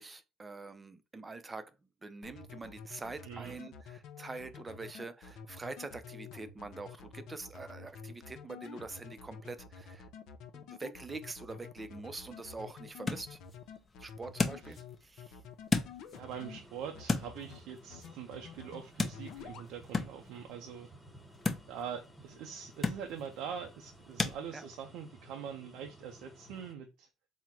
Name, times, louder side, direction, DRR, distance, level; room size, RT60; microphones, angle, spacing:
voice 1, 0.0-1.8 2.0-10.1 10.5-13.4 14.0-15.4 24.5-24.7, right 3 dB, 20° right, 0.5 m, -45 dB
sound 1, 2.2-16.6 16.9-17.6 17.9-18.8 19.1-19.7, left 7 dB, 70° left, 0.6 m, -49 dB
voice 2, 3.2-3.6 14.6-14.8 16.1-20.9 21.7-27.1, right 8 dB, 80° right, 0.5 m, -43 dB
sound 2, 11.9-24.4, left 3 dB, 25° left, 0.6 m, -38 dB
sound 3, 16.2-26.7, right 1 dB, ahead, 1.3 m, -57 dB
3.7 x 2.1 x 4.4 m
cardioid pair, 110°, 0 cm